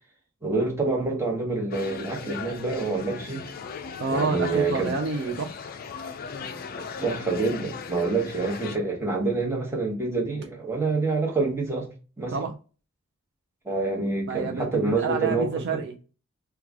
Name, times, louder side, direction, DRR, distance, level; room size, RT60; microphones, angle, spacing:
voice 1, 0.4-3.5 4.1-4.9 7.0-11.9 12.2-12.4 13.6-15.8, right 3 dB, 10° right, 1.0 m, -27 dB
sound 1, 1.7-8.8, left 6 dB, 40° left, 0.3 m, -38 dB
voice 2, 4.0-5.6 12.3-12.5 14.3-16.0, right 4 dB, 55° right, 0.5 m, -28 dB
3.2 x 2.3 x 3.5 m
head